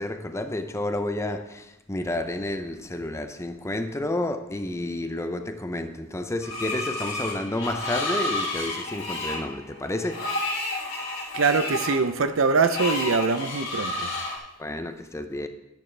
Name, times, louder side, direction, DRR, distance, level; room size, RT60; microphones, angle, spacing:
voice 1, 0.0-10.2 14.6-15.5, left 1 dB, 15° left, 0.6 m, -30 dB
Screech, 6.4-14.4, left 2 dB, 75° left, 2.9 m, -31 dB
voice 2, 11.3-14.1, right 4 dB, 75° right, 0.6 m, -23 dB
11.5 x 10.5 x 3.3 m
head